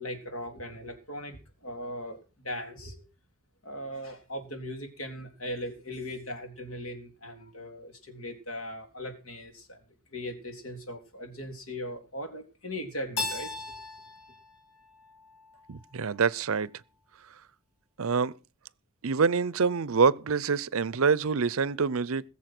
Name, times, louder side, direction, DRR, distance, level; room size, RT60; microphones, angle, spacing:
voice 1, 0.0-3.1 3.6-9.8 10.1-13.8, left 1 dB, 65° left, 3.6 m, -39 dB
Keyboard (musical), 13.2-16.0, left 3 dB, 90° left, 3.2 m, -38 dB
voice 2, 15.7-16.7 18.0-18.3 19.0-22.2, right 5 dB, 70° right, 0.6 m, -26 dB
20.5 x 7.2 x 6.0 m
head